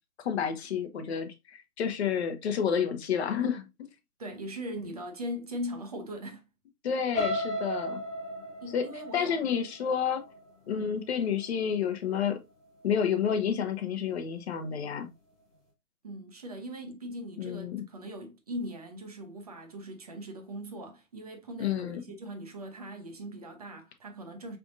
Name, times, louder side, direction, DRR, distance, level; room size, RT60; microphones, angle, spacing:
voice 1, 0.2-3.7 6.8-8.0 8.7-8.9 9.1-10.2 10.7-12.4 12.8-15.1 17.4-17.8 21.6-22.0, left 7 dB, 45° left, 0.9 m, -30 dB
voice 2, 4.2-6.4 8.6-9.4 10.7-10.9 16.0-24.6, equal, 25° right, 0.6 m, -40 dB
sound 1, 7.1-11.1 11.6-11.9 12.2-12.3, equal, 5° left, 0.9 m, -35 dB
5.0 x 3.4 x 2.5 m
figure-of-eight pair, 140°, 46 cm